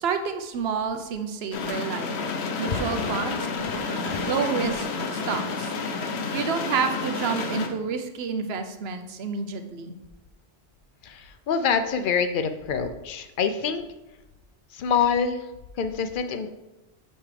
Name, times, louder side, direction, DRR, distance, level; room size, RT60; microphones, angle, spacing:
voice 1, 0.0-2.1 2.6-4.9 5.1-5.7 6.3-10.0, right 6 dB, 75° right, 7 dB, 0.9 m, -29 dB
sound 1, 1.5-7.7, left 4 dB, 85° left, 1.0 m, -30 dB
voice 2, 11.0-13.8 14.7-15.5 15.7-16.5, left 6 dB, 60° left, 9 dB, 0.7 m, -26 dB
6.0 x 5.5 x 3.3 m, 0.99 s
omnidirectional pair, 1.1 m